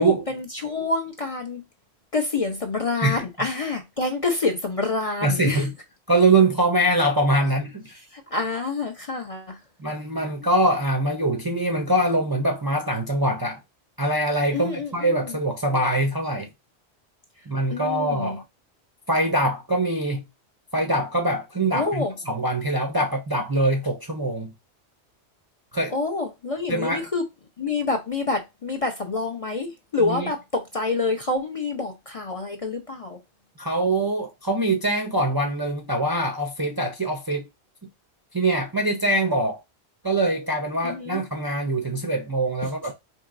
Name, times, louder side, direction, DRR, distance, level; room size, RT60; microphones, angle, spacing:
voice 1, 0.0-1.6 2.1-5.7 8.1-9.6 14.5-15.4 17.7-18.4 21.7-22.2 25.9-27.2 27.6-33.2 40.8-41.2, left 3 dB, 40° left, 0.5 m, -27 dB
voice 2, 5.2-5.7 6.1-7.8 9.8-13.6 14.0-16.5 17.5-18.4 19.1-20.3 20.7-24.5 25.7-25.9 26.7-27.0 30.0-30.3 33.6-37.5 38.3-39.6 40.0-42.9, right 1 dB, 30° right, 0.5 m, -23 dB
4.5 x 2.9 x 2.5 m
omnidirectional pair, 1.1 m